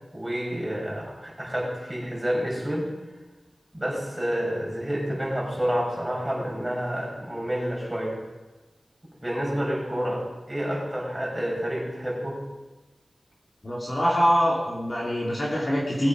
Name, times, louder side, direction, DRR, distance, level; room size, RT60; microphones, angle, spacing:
voice 1, 0.1-2.9 3.7-8.2 9.2-12.4, equal, 10° right, -3 dB, 5.4 m, -29 dB
voice 2, 13.6-16.1, equal, 35° left, -4 dB, 2.9 m, -24 dB
20.0 x 8.2 x 5.3 m, 1.1 s
wide cardioid pair, 90°, 0 cm